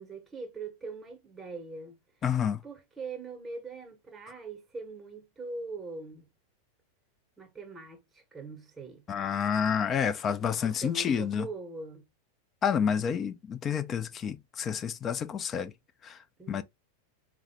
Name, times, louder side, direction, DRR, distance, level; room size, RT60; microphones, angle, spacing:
voice 1, 0.0-2.0 2.6-6.3 7.4-9.0 10.6-12.1 16.4-16.6, right 3 dB, 10° right, 0.9 m, -42 dB
voice 2, 2.2-2.6 9.1-11.5 12.6-15.7 16.0-16.2 16.5-16.6, left 7 dB, 25° left, 0.4 m, -29 dB
4.0 x 2.0 x 3.1 m
figure-of-eight pair, 90°, 0 cm